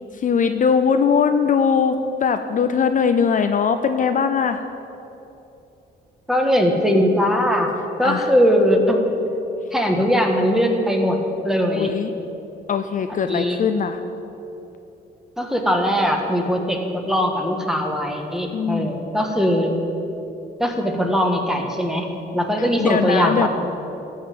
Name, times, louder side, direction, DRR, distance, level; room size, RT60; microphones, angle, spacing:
voice 1, 0.1-4.6 8.0-8.3 11.7-12.1 12.7-14.0 18.5-19.0 22.6-23.5, left 6 dB, 45° left, 8 dB, 0.5 m, -20 dB
voice 2, 6.3-7.7 8.0-9.0 9.7-11.2 11.4-11.9 13.2-13.6 15.4-19.7 20.6-22.1 22.3-23.5, equal, ahead, 2 dB, 1.5 m, -20 dB
13.0 x 5.7 x 8.7 m, 3.0 s
cardioid pair, 100°, 18 cm